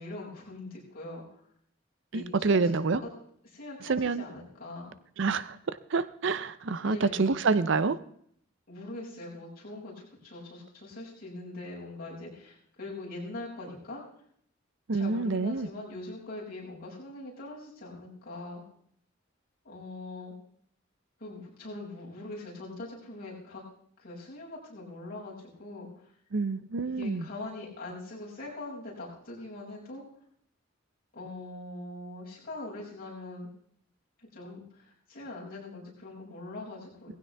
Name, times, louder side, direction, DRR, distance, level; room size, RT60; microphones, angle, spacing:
voice 1, 0.0-1.4 2.1-3.1 3.4-4.9 6.8-7.5 8.7-14.0 14.9-18.6 19.6-20.3 21.2-23.6 24.0-26.1 26.8-30.0 31.1-33.5 34.2-37.2, left 2 dB, 50° left, -5 dB, 6.2 m, -42 dB
voice 2, 2.1-3.0 3.8-4.2 5.2-8.0 14.9-15.7 26.3-27.3, right 4 dB, 65° right, 15 dB, 0.6 m, -27 dB
18.5 x 15.5 x 3.5 m, 0.65 s
head